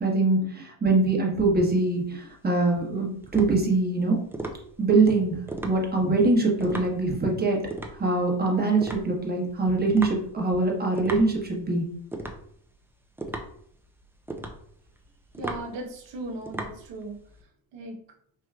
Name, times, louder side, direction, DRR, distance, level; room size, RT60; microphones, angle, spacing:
voice 1, 0.0-4.2 4.8-5.4 5.6-7.6 8.0-11.8, right 3 dB, 20° right, -1 dB, 1.1 m, -23 dB
sound 1, 1.8-17.4, right 1 dB, 5° right, 0.5 m, -39 dB
voice 2, 15.4-17.2 17.7-18.0, right 2 dB, 70° right, 2 dB, 1.1 m, -37 dB
4.6 x 3.0 x 2.3 m, 0.65 s
cardioid pair, 100°, 45 cm